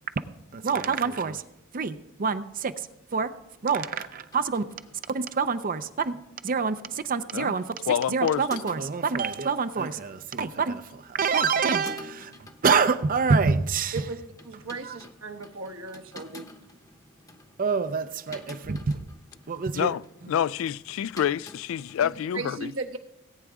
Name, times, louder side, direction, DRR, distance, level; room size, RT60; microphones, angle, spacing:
voice 1, 0.5-1.4 1.7-3.3 3.6-4.6 5.1-6.2 6.4-14.0 14.8-15.0 17.6-19.0 19.5-19.9, right 5 dB, 45° right, 0.5 m, -26 dB
sound 1, 3.6-22.2, left 2 dB, 15° left, 0.9 m, -50 dB
voice 2, 7.9-8.4 19.7-20.0 20.3-22.7, left 9 dB, 70° left, 0.3 m, -27 dB
voice 3, 13.9-16.5 22.3-23.0, right 3 dB, 75° right, 1.2 m, -36 dB
18.5 x 9.0 x 3.6 m
head